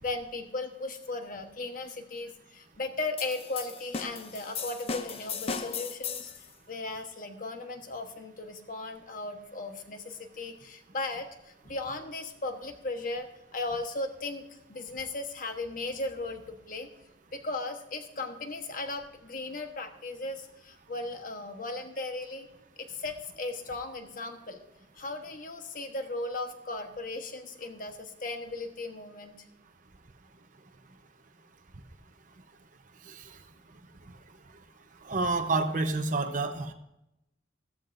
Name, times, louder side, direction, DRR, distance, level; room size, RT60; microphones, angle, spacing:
voice 1, 0.0-16.9 17.3-22.5 22.8-24.6 24.9-29.4, left 2 dB, 45° left, 5 dB, 1.2 m, -37 dB
sound 1, 3.2-6.5, left 5 dB, 30° left, 0.6 m, -36 dB
voice 2, 33.0-33.4 35.0-36.7, right 3 dB, 45° right, 6 dB, 0.9 m, -29 dB
14.5 x 13.0 x 2.6 m, 0.87 s
head